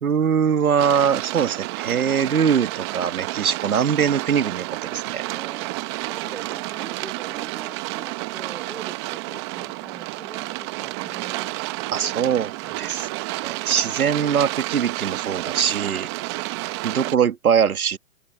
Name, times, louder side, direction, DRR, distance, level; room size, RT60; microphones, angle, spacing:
voice 1, 0.0-5.2 11.9-12.5 12.8-13.1 13.4-16.1 16.8-18.0, right 7 dB, 80° right, 1.9 m, -22 dB
sound 1, 0.8-17.1, right 21 dB, 20° right, 1.0 m, -30 dB
voice 2, 5.1-11.6 11.9-12.8, right 2 dB, 5° right, 2.8 m, -44 dB
hypercardioid pair, 150°, 43 cm